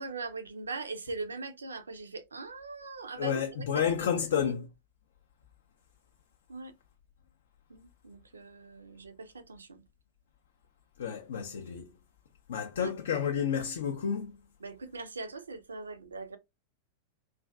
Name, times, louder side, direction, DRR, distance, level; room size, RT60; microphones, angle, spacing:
voice 1, 0.0-4.5 6.5-6.7 7.7-9.8 12.8-12.9 14.6-16.4, right 3 dB, 75° right, 0.4 m, -41 dB
voice 2, 3.2-4.7 11.0-11.9 12.5-14.3, left 7 dB, 60° left, 0.4 m, -30 dB
2.4 x 2.3 x 2.2 m
figure-of-eight pair, 90°, 0 cm